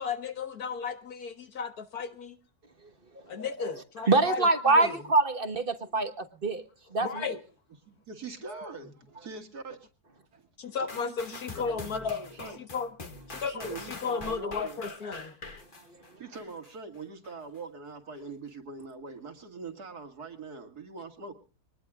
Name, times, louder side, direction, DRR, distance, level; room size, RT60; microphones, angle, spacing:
voice 1, 0.0-2.4 3.3-4.5 4.7-4.9 7.0-7.4 10.6-12.9 13.3-15.4, left 5 dB, 65° left, 2.0 m, -34 dB
voice 2, 3.1-3.5 4.1-6.6 6.9-7.2 15.9-16.0, right 3 dB, 35° right, 1.4 m, -25 dB
voice 3, 7.9-9.9 10.3-10.5 10.8-11.9 12.4-12.6 13.4-14.8 16.2-21.3, right 4 dB, 70° right, 2.7 m, -43 dB
sound 1, 10.9-16.7 17.2-17.3, left 3 dB, 30° left, 1.6 m, -44 dB
24.0 x 20.0 x 2.4 m
omnidirectional pair, 1.8 m